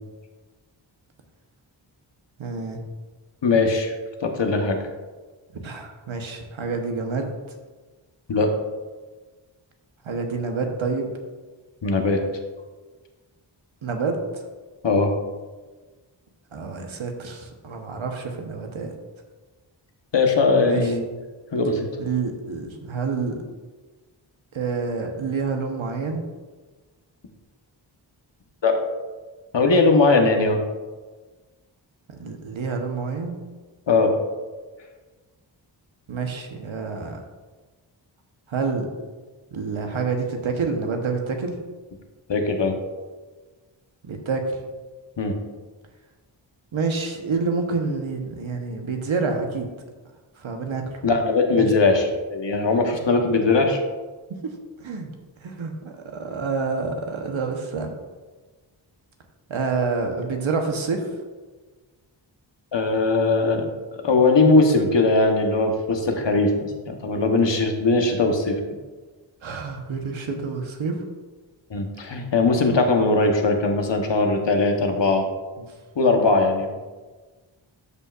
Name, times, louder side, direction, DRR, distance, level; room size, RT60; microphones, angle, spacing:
voice 1, 2.4-2.8 5.5-7.3 10.0-11.1 13.8-14.4 16.5-18.9 20.6-21.0 22.0-23.4 24.5-26.2 32.1-33.4 36.1-37.2 38.5-38.9 39.5-41.5 44.0-44.6 46.7-49.7 50.4-50.9 51.6-51.7 54.3-54.4 54.8-55.1 55.4-57.9 59.5-61.1 69.4-71.0 75.6-75.7, right 4 dB, 85° right, 3 dB, 1.2 m, -28 dB
voice 2, 3.4-3.9 4.2-4.8 8.3-8.5 11.8-12.2 14.8-15.1 20.1-21.0 21.5-21.9 28.6-28.8 29.5-30.6 33.9-34.1 42.3-42.7 45.2-45.4 51.0-53.8 62.7-68.6 71.7-75.2 76.0-76.7, left 3 dB, 65° left, 3 dB, 1.2 m, -20 dB
13.0 x 5.5 x 2.5 m, 1.3 s
wide cardioid pair, 65°, 47 cm